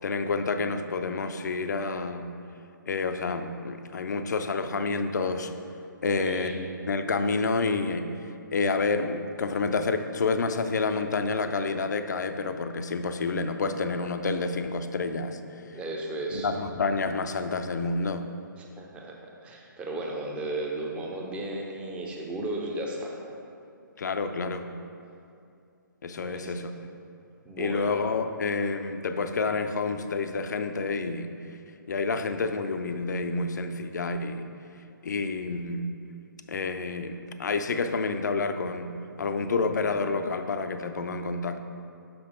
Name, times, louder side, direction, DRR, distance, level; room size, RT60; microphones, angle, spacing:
voice 1, 0.0-2.3 2.9-5.5 6.0-15.8 16.3-18.3 24.0-24.7 26.0-26.8 27.6-31.5 31.9-34.5 35.0-35.9 36.5-38.9 39.2-41.6, left 4 dB, 55° left, 8 dB, 0.5 m, -29 dB
voice 2, 6.2-6.6 15.7-16.5 18.8-23.2 26.2-26.6 27.5-27.9, right 2 dB, 10° right, 0 dB, 0.6 m, -35 dB
5.9 x 5.8 x 5.0 m, 2.5 s
figure-of-eight pair, 135°, 11 cm